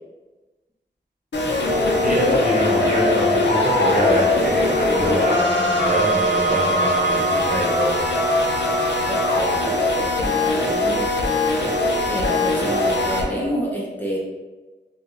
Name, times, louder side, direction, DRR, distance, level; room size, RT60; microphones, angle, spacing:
sound 1, 1.3-13.2, left 2 dB, 80° left, 0.5 m, -20 dB
voice 1, 2.0-8.0, right 1 dB, 50° right, -5 dB, 1.0 m, -25 dB
voice 2, 9.1-11.2 12.0-14.2, equal, 10° left, -5 dB, 0.6 m, -29 dB
3.2 x 2.3 x 2.7 m, 1.2 s
wide cardioid pair, 60°, 18 cm